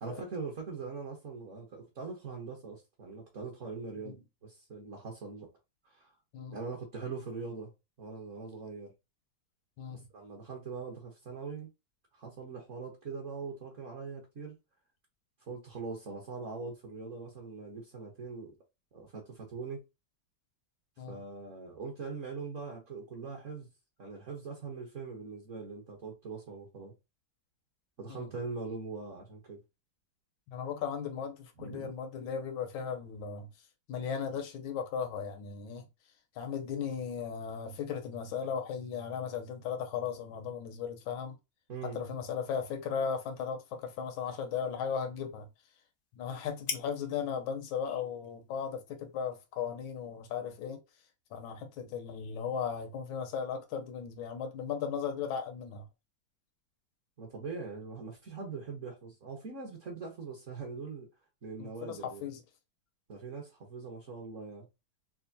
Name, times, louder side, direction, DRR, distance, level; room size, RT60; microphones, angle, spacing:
voice 1, 0.0-5.5 5.8-6.1 6.5-7.7 8.0-8.9 9.9-11.7 12.1-14.5 15.4-18.5 18.9-19.8 21.1-23.7 24.0-26.9 28.0-29.6 31.6-31.9 41.7-42.0 57.2-61.1 61.4-62.3 63.1-64.7, right 4 dB, 50° right, 1.2 m, -42 dB
voice 2, 30.5-33.5 33.9-35.8 36.3-41.4 41.8-45.5 46.1-50.8 51.3-55.9 61.6-62.4, left 7 dB, 90° left, 1.5 m, -36 dB
sound 1, 42.3-50.1, left 6 dB, 70° left, 0.7 m, -48 dB
5.7 x 2.1 x 2.6 m
omnidirectional pair, 2.1 m